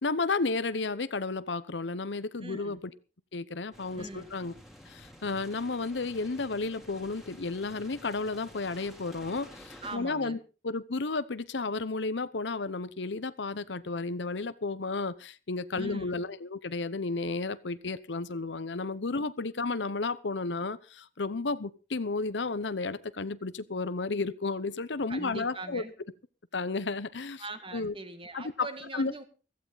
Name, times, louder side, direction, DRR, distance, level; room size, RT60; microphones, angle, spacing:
voice 1, 0.0-2.8 3.3-4.5 4.9-10.4 10.6-25.8 26.5-27.4 27.7-27.9 28.3-28.7 28.9-29.1, left 3 dB, 80° left, 14 dB, 0.9 m, -32 dB
voice 2, 2.4-2.8 3.9-4.3 9.8-10.4 15.7-16.1 19.1-19.2 25.1-25.9 27.4-29.2, right 2 dB, 30° right, 9 dB, 1.9 m, -42 dB
sound 1, 3.7-10.0, equal, ahead, 2.8 m, -51 dB
15.5 x 15.0 x 4.0 m, 0.34 s
head